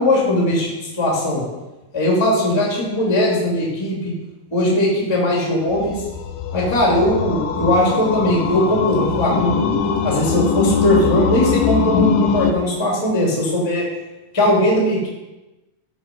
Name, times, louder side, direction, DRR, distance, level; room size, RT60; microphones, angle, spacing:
voice 1, 0.0-1.4 1.9-4.1 4.5-6.0 6.5-9.6 10.0-13.8 14.3-15.1, left 1 dB, 10° left, -3 dB, 2.4 m, -19 dB
sound 1, 5.7-12.5, left 5 dB, 85° left, 2.6 m, -21 dB
15.0 x 5.0 x 5.4 m, 1.1 s
omnidirectional pair, 4.1 m